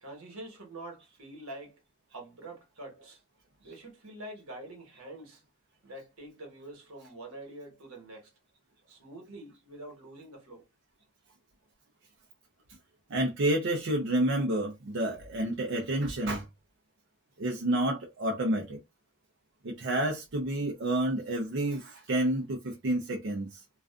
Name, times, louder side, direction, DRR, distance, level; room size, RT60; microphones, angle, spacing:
voice 1, 0.0-1.8 2.1-3.2 3.6-5.4 5.8-8.3 8.9-10.6, right 1 dB, 85° right, 1.1 m, -46 dB
voice 2, 13.1-16.4 17.4-18.8 19.6-23.6, right 1 dB, 55° right, 0.5 m, -29 dB
2.4 x 2.3 x 2.3 m
head